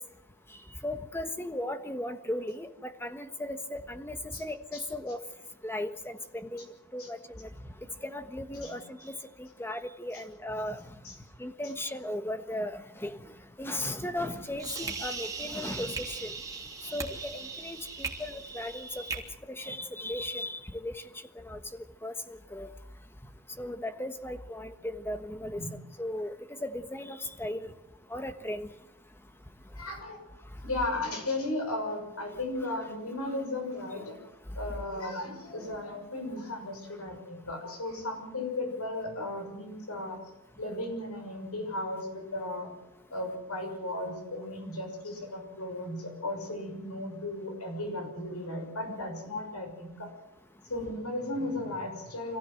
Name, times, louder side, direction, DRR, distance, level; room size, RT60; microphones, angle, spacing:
voice 1, 0.8-5.2 5.6-7.5 8.0-9.1 9.4-10.8 11.4-13.3 13.6-16.3 16.9-19.0 19.5-21.0 21.4-21.6 22.0-22.7 23.6-25.6 26.0-26.4 26.6-27.7 28.1-28.7, left 1 dB, 10° left, 8 dB, 1.3 m, -36 dB
sound 1, 14.2-19.2, right 4 dB, 15° right, 3.0 m, -39 dB
voice 2, 29.8-30.2 30.6-34.2 34.6-40.2 40.6-42.7 43.1-50.1 50.7-52.4, left 2 dB, 85° left, 4 dB, 6.6 m, -35 dB
26.0 x 16.0 x 7.8 m, 0.92 s
head